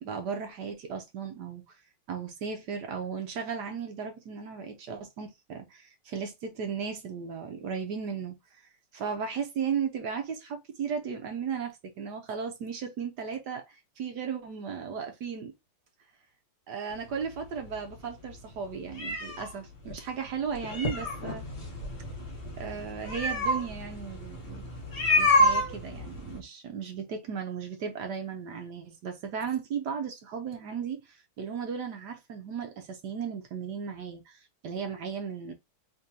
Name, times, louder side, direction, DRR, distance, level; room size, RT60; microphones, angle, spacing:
voice 1, 0.0-1.8 2.1-8.7 8.9-15.5 16.7-21.4 22.6-24.6 25.2-35.5, right 6 dB, 65° right, 1.1 m, -36 dB
sound 1, 16.9-26.4, left 1 dB, 35° left, 1.2 m, -29 dB
3.7 x 3.6 x 2.7 m
omnidirectional pair, 2.3 m